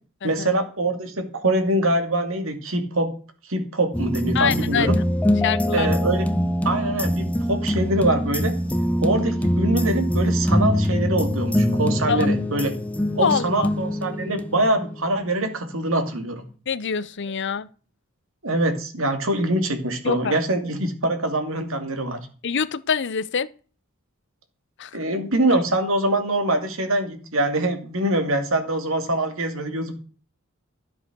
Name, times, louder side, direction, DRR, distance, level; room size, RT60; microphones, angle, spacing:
voice 1, 0.2-3.1 3.5-5.0 5.7-6.3 6.6-8.5 9.0-12.7 13.1-16.4 18.4-22.2 24.9-29.9, right 1 dB, 70° right, 2.5 m, -24 dB
sound 1, 3.9-15.0 15.3-15.4, equal, 5° left, 0.8 m, -23 dB
voice 2, 4.3-4.9 5.4-5.9 12.1-12.3 13.2-13.7 16.7-17.7 20.0-20.4 22.4-23.5 24.8-25.0, left 6 dB, 55° left, 0.7 m, -25 dB
13.0 x 7.9 x 6.2 m
head